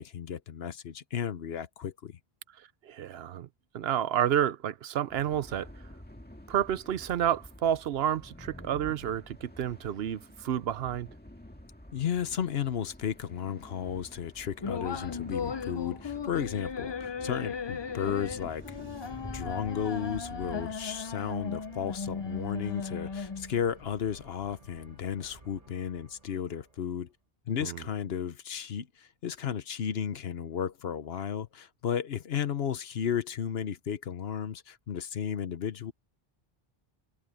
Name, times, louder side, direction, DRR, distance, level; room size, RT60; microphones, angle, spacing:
voice 1, 0.0-2.2 11.9-18.8 19.3-27.1 27.5-35.9, left 8 dB, 75° left, 1.1 m, -34 dB
voice 2, 2.8-3.5 3.7-5.7 6.5-11.1 27.6-27.8, right 10 dB, 75° right, 0.9 m, -30 dB
sound 1, 5.1-20.7, left 1 dB, 10° left, 1.7 m, -48 dB
sound 2, 14.6-23.6, left 5 dB, 35° left, 0.4 m, -37 dB
sound 3, 18.0-27.2, right 3 dB, 35° right, 1.5 m, -55 dB
omnidirectional pair, 1.1 m